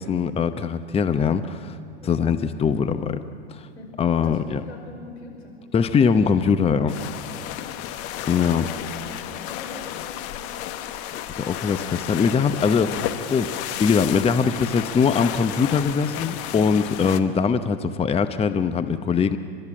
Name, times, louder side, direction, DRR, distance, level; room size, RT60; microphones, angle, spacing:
voice 1, 0.0-1.8 2.1-3.2 3.5-3.7 4.0-4.6 5.7-6.9 8.3-8.6 11.4-13.0 13.3-13.5 13.8-19.4, left 6 dB, 20° left, 10 dB, 0.8 m, -22 dB
voice 2, 2.0-2.4 3.7-5.6 8.5-8.7 9.1-10.9, left 3 dB, 90° left, 1 dB, 5.5 m, -42 dB
sound 1, 6.9-17.2, left 12 dB, 50° left, 1.3 m, -32 dB
29.5 x 13.0 x 9.9 m, 2.3 s
hypercardioid pair, 95°, 32 cm